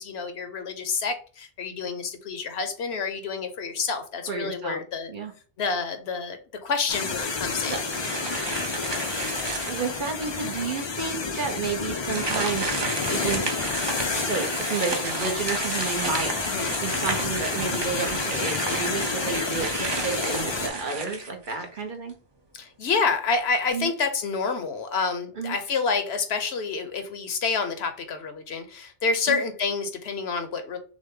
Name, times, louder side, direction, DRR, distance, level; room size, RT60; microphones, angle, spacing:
voice 1, 0.0-5.1 5.6-7.7 16.5-16.7 22.6-30.8, left 5 dB, 70° left, 8 dB, 1.0 m, -28 dB
voice 2, 4.3-4.8 5.1-5.3 7.7-7.8 9.7-13.7 14.2-16.4 16.8-22.2 23.7-23.9 25.4-25.6 29.3-29.4, right 4 dB, 50° right, 3 dB, 0.9 m, -31 dB
sound 1, 6.9-20.7, left 4 dB, 40° left, 0.4 m, -30 dB
sound 2, 7.5-10.1 10.6-10.7 12.0-21.8, right 3 dB, 30° right, 0.6 m, -32 dB
6.1 x 2.1 x 3.6 m, 0.41 s
omnidirectional pair, 1.1 m